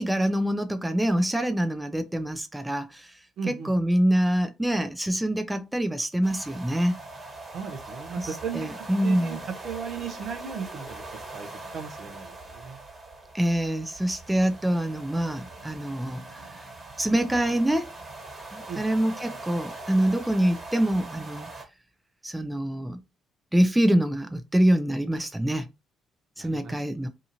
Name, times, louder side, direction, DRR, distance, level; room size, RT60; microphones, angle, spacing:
voice 1, 0.0-3.1 3.5-6.9 8.2-8.3 8.5-9.4 13.3-16.6 17.0-17.9 18.5-21.5 22.2-23.0 23.5-25.7 26.4-27.1, right 1 dB, 10° right, 0.5 m, -25 dB
voice 2, 3.4-3.7 7.5-8.7 9.0-9.4 9.6-11.1 11.3-11.5 11.7-12.8 18.7-18.8 26.4-26.8, right 6 dB, 60° right, 0.6 m, -36 dB
sound 1, 6.2-21.6, right 2 dB, 30° right, 1.3 m, -42 dB
2.8 x 2.4 x 2.7 m
hypercardioid pair, 55°, 0 cm